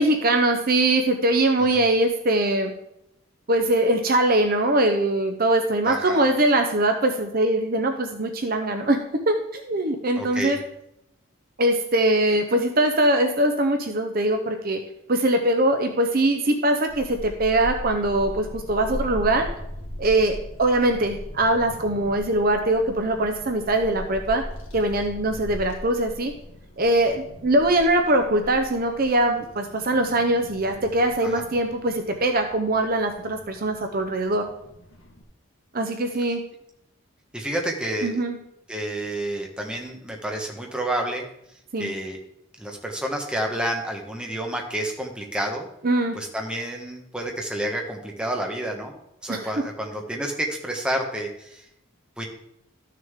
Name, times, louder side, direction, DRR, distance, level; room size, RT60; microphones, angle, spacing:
voice 1, 0.0-2.7 3.5-9.0 9.3-10.6 11.6-14.8 15.1-19.5 20.0-24.4 24.7-26.3 26.8-34.4 35.7-36.4 38.0-38.4 41.7-41.9 45.8-46.2 49.3-49.5, right 1 dB, 45° right, 5 dB, 0.7 m, -22 dB
voice 2, 5.8-6.2 10.2-10.6 31.2-31.5 37.3-38.1 38.7-41.2 41.8-42.2 42.6-45.7 46.1-48.9 49.2-51.6 52.2-52.3, right 1 dB, 5° right, 1 dB, 1.3 m, -29 dB
Child speech kid speaking / Wind, 16.9-35.2, equal, 70° left, 1.7 m, -39 dB
13.0 x 6.6 x 3.6 m, 0.79 s
head